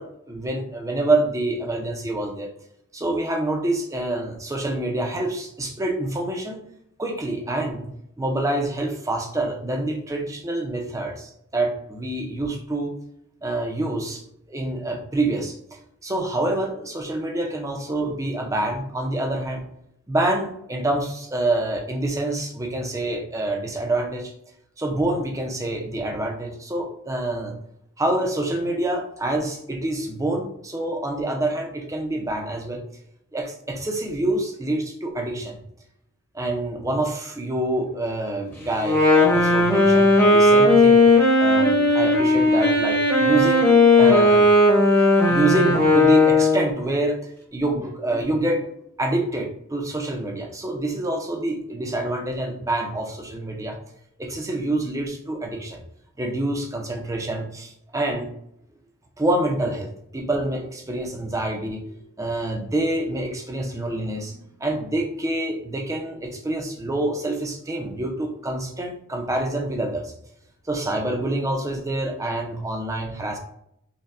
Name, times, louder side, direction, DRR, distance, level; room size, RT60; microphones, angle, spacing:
voice 1, 0.0-2.5 2.9-6.6 7.0-7.9 8.2-12.9 13.4-14.2 14.5-19.6 20.1-24.3 24.8-27.6 28.0-32.8 33.3-35.6 36.3-41.0 41.4-43.7 44.0-44.5 45.3-48.7 49.0-53.8 54.2-55.8 56.2-58.3 59.2-70.1 70.7-73.4, right 2 dB, 15° right, 1 dB, 0.5 m, -26 dB
Wind instrument woodwind instrument, 38.8-46.8, left 2 dB, 10° left, 0.9 m, -16 dB
5.2 x 2.2 x 2.5 m, 0.74 s
head